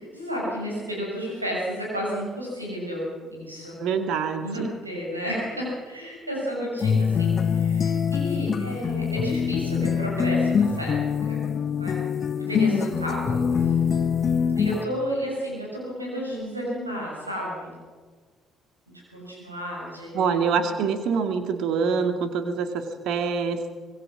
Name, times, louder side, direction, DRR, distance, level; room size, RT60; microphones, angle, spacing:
voice 1, 0.1-3.8 4.4-11.0 11.3-11.4 11.8-11.9 12.4-13.8 14.5-17.7 19.1-20.5, equal, 85° right, -4 dB, 6.8 m, -32 dB
voice 2, 3.8-4.7 20.1-23.7, right 6 dB, 55° right, 7 dB, 2.3 m, -25 dB
sound 1, 6.8-14.8, left 6 dB, 40° left, 1.4 m, -24 dB
25.0 x 20.5 x 6.2 m, 1.5 s
figure-of-eight pair, 50°, 0 cm